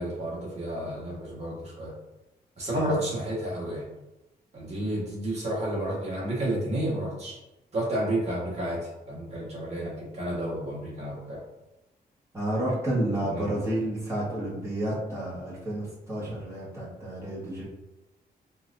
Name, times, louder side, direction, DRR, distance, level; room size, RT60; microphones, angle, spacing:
voice 1, 0.0-1.9 2.6-3.8 4.5-7.4 7.7-11.4 13.3-13.5, right 1 dB, 40° right, -6 dB, 1.5 m, -31 dB
voice 2, 12.3-17.6, right 1 dB, 15° right, -9 dB, 1.4 m, -30 dB
4.3 x 2.6 x 2.5 m, 0.99 s
wide cardioid pair, 135°, 17 cm